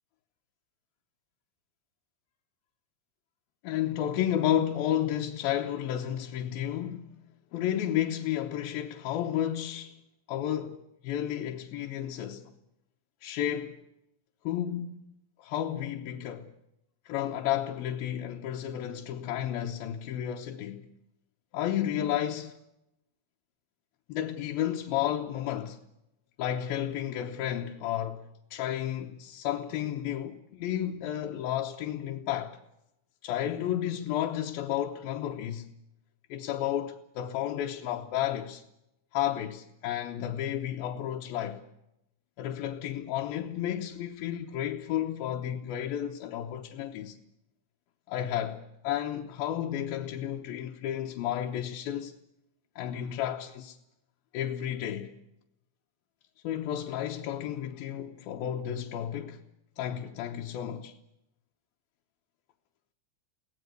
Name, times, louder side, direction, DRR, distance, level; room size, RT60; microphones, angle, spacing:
voice 1, 3.6-7.1 7.5-10.0 10.3-12.5 13.2-13.8 14.4-15.1 15.4-16.5 17.1-20.9 21.5-22.6 24.1-25.8 26.4-32.6 33.2-35.7 36.3-38.6 39.1-41.6 42.4-47.2 48.1-52.1 52.8-53.8 54.3-55.1 56.4-59.4 59.8-60.9, left 11 dB, 80° left, 2.9 m, -32 dB
23.5 x 18.0 x 8.1 m
omnidirectional pair, 4.2 m